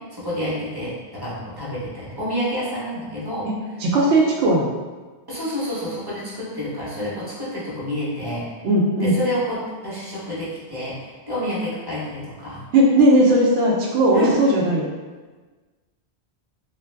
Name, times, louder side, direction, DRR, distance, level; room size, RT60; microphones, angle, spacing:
voice 1, 0.1-3.5 5.3-8.5 9.0-12.6 14.1-14.3, equal, 25° right, -8 dB, 0.8 m, -28 dB
voice 2, 3.8-4.8 8.6-9.2 12.7-14.9, right 1 dB, 80° right, -3 dB, 0.9 m, -17 dB
2.6 x 2.2 x 3.3 m, 1.3 s
omnidirectional pair, 1.1 m